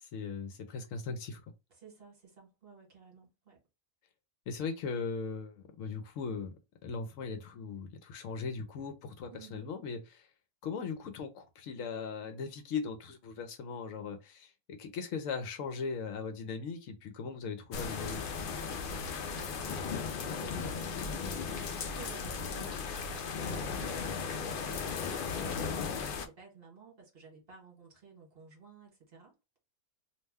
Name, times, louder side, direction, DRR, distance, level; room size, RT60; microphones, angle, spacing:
voice 1, 0.0-1.5 4.5-6.5 6.8-10.3 10.6-18.3, left 5 dB, 70° left, 0.9 m, -39 dB
voice 2, 1.7-3.6 9.3-9.7 18.8-29.3, right 5 dB, 45° right, 1.2 m, -54 dB
sound 1, 17.7-26.3, left 5 dB, 85° left, 0.4 m, -36 dB
2.5 x 2.1 x 3.3 m
omnidirectional pair, 1.5 m